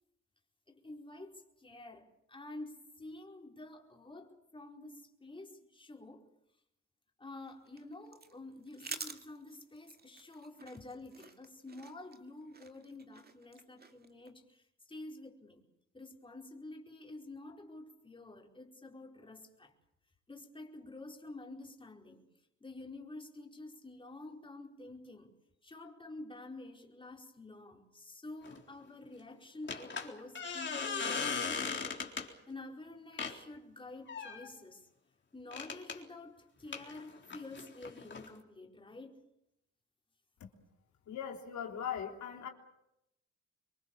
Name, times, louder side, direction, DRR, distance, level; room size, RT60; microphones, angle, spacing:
voice 1, 0.7-6.3 7.2-15.6 15.9-19.7 20.3-22.2 22.6-25.3 25.6-34.9 35.3-39.2, left 2 dB, 15° left, 1 dB, 4.6 m, -49 dB
sound 1, 7.4-14.3, right 4 dB, 30° right, 2.3 m, -50 dB
sound 2, 28.4-28.6 29.7-32.3 33.2-33.4 34.1-34.5 35.5-36.0 36.7-38.3, left 5 dB, 40° left, 3.9 m, -38 dB
voice 2, 41.1-42.5, left 8 dB, 70° left, 2 dB, 3.5 m, -39 dB
26.0 x 22.5 x 7.2 m, 0.84 s
cardioid pair, 90°, 30 cm